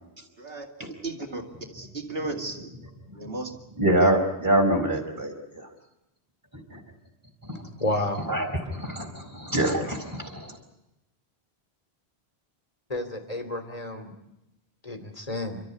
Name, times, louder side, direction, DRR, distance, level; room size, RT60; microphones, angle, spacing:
voice 1, 0.4-1.4 1.7-2.7 3.1-3.6, right 2 dB, 65° right, 3 dB, 2.7 m, -35 dB
voice 2, 3.8-5.7 6.7-6.8 7.4-7.6 8.3-10.6, right 1 dB, 20° right, 1 dB, 4.5 m, -25 dB
voice 3, 7.8-8.2 12.9-14.1 14.8-15.6, left 1 dB, 35° left, 7 dB, 3.1 m, -30 dB
29.5 x 13.5 x 9.8 m, 0.90 s
omnidirectional pair, 1.1 m